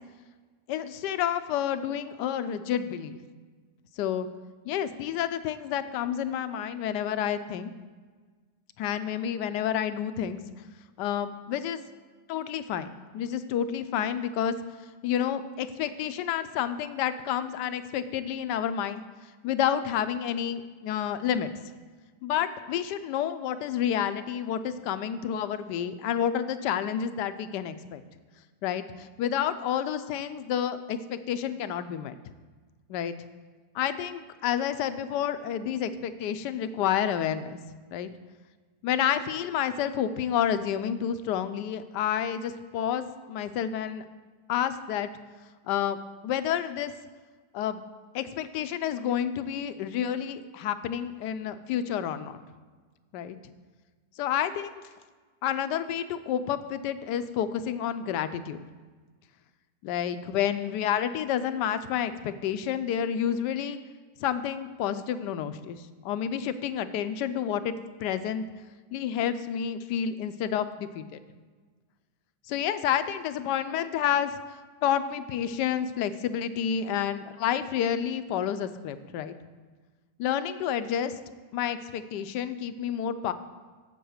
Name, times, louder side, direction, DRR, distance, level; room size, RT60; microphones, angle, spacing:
voice 1, 0.7-3.2 4.0-4.3 4.6-7.7 8.8-10.4 11.0-11.8 12.3-14.5 15.0-19.0 19.4-21.5 22.2-28.0 28.6-32.2 32.9-33.1 33.7-37.6 37.9-38.1 38.8-44.0 44.5-45.1 45.7-46.0 46.2-46.9 47.5-47.8 48.1-52.4 53.1-53.4 54.2-54.7 55.4-58.6 59.8-63.8 64.2-67.7 68.0-68.5 68.9-71.2 72.5-74.4 74.8-79.3 80.2-81.1 81.5-83.3, left 9 dB, 85° left, 11 dB, 1.2 m, -29 dB
7.9 x 6.9 x 6.4 m, 1.4 s
omnidirectional pair, 1.8 m